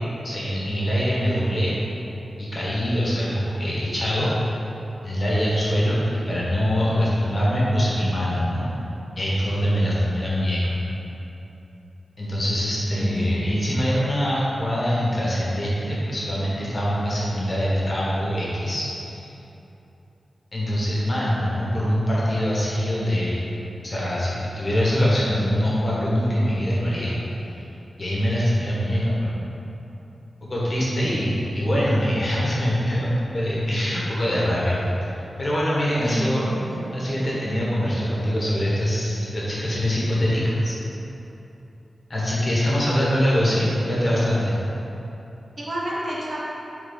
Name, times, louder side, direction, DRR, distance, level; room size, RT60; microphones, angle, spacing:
voice 1, 0.2-1.7 2.4-4.3 5.0-8.7 9.1-10.8 12.2-19.3 20.5-23.4 23.8-27.2 28.0-29.4 30.5-34.8 35.4-36.4 36.9-40.7 42.1-44.6, equal, 35° left, -7 dB, 1.4 m, -23 dB
voice 2, 12.9-13.6 36.0-37.0 45.6-46.4, equal, 40° right, -7 dB, 1.2 m, -30 dB
6.9 x 4.4 x 4.0 m, 3.0 s
wide cardioid pair, 160°, 0 cm